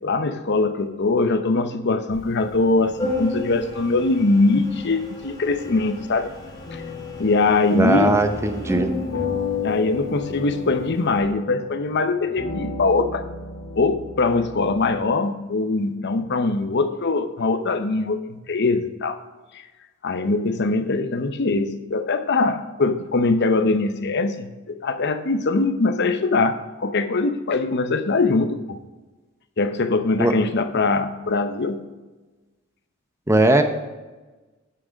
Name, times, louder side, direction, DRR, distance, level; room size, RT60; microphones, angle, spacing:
voice 1, 0.0-6.3 6.7-6.8 7.2-8.2 9.6-13.2 13.7-19.2 19.5-19.6 20.0-28.8 29.6-31.8, left 3 dB, 55° left, 10 dB, 0.8 m, -22 dB
Organ, 2.1-11.2, left 2 dB, 20° left, 2.4 m, -35 dB
sound 1, 6.6-14.9, left 5 dB, 85° left, 2.3 m, -33 dB
voice 2, 7.7-8.9 30.2-30.3 33.3-33.6, right 2 dB, 15° right, 7 dB, 0.8 m, -18 dB
10.0 x 6.2 x 5.2 m, 1.2 s
head